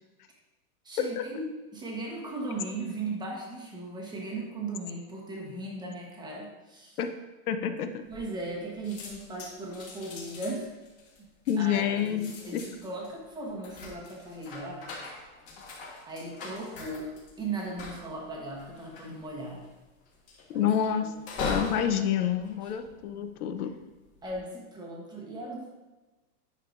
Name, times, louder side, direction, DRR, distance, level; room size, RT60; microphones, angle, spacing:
voice 1, 0.8-7.0 8.1-10.7 11.6-14.9 16.1-19.6 20.5-20.7 21.0-21.1 21.4-21.5 24.2-25.7, right 2 dB, 10° right, -2 dB, 1.1 m, -37 dB
voice 2, 7.5-8.0 11.5-12.6 20.5-21.1 21.4-23.7, left 9 dB, 70° left, 8 dB, 0.8 m, -28 dB
sound 1, 8.1-8.6 8.8-23.4 24.0-24.4, left 3 dB, 30° left, 1.5 m, -42 dB
10.0 x 5.7 x 2.6 m, 1.2 s
supercardioid pair, 150°, 47 cm